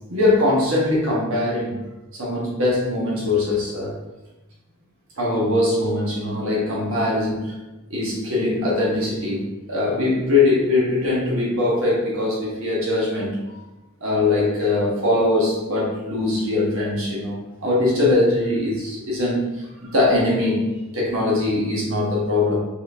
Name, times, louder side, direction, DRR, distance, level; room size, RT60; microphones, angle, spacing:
voice 1, 0.1-1.7 2.1-3.9 5.2-7.5 7.9-13.6 14.0-20.7 20.9-22.6, left 2 dB, 65° right, -4 dB, 1.4 m, -21 dB
4.4 x 4.3 x 2.8 m, 1.0 s
head